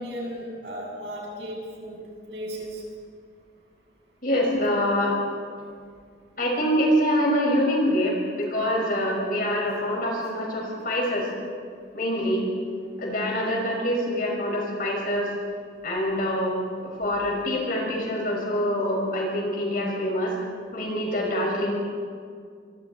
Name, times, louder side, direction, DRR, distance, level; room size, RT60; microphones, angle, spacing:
voice 1, 0.0-2.8, equal, 70° right, -2 dB, 7.3 m, -35 dB
voice 2, 4.2-5.2 6.4-11.3 11.9-12.4 13.0-15.3 15.8-16.5 16.8-20.3 20.7-21.8, equal, 50° left, -1 dB, 6.1 m, -25 dB
25.0 x 23.5 x 4.4 m, 2.1 s
head